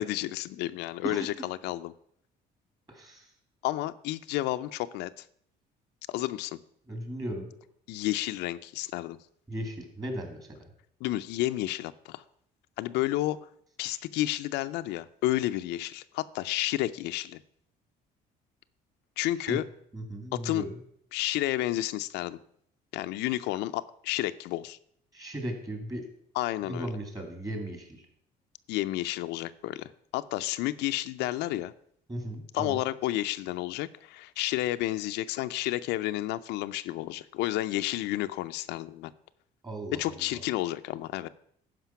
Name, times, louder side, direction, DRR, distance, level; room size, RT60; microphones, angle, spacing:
voice 1, 0.0-1.9 3.6-5.2 6.1-6.6 7.9-9.2 11.0-12.2 12.8-13.4 13.8-17.4 19.2-19.6 20.3-20.7 21.1-22.4 22.9-24.8 26.3-26.9 28.7-31.7 32.5-39.1 39.9-41.3, left 15 dB, 90° left, 11 dB, 0.4 m, -31 dB
voice 2, 2.9-3.3 6.9-7.5 9.5-10.7 19.5-19.6 19.9-20.7 25.1-26.0 26.6-28.0 32.1-32.8 39.6-40.4, right 1 dB, 20° right, 4 dB, 2.4 m, -36 dB
12.0 x 5.0 x 5.7 m, 0.69 s
cardioid pair, 110°, 17 cm